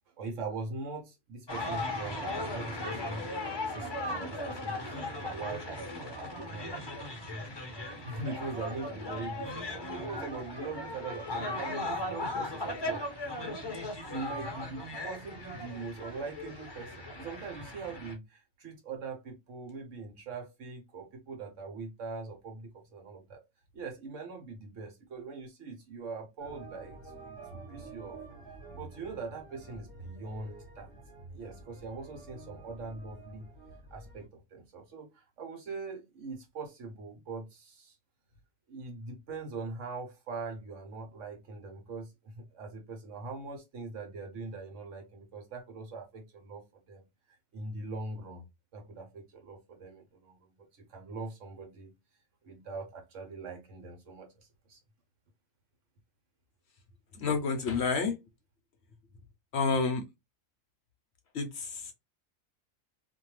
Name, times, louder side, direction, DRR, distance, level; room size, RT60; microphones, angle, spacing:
voice 1, 0.2-7.1 8.0-13.1 14.1-23.4 23.7-28.2 28.7-30.9 31.3-33.5 33.9-38.0 38.7-47.0 47.3-48.4 48.7-50.4 50.8-51.9 52.4-54.8, right 3 dB, 70° right, 1.2 m, -42 dB
sound 1, 1.5-18.1, left 1 dB, 25° left, 0.6 m, -37 dB
sound 2, 26.4-34.3, right 3 dB, 20° right, 1.3 m, -49 dB
voice 2, 57.2-58.1 59.5-60.0 61.3-61.9, left 4 dB, 60° left, 0.8 m, -29 dB
2.6 x 2.2 x 3.0 m
omnidirectional pair, 1.4 m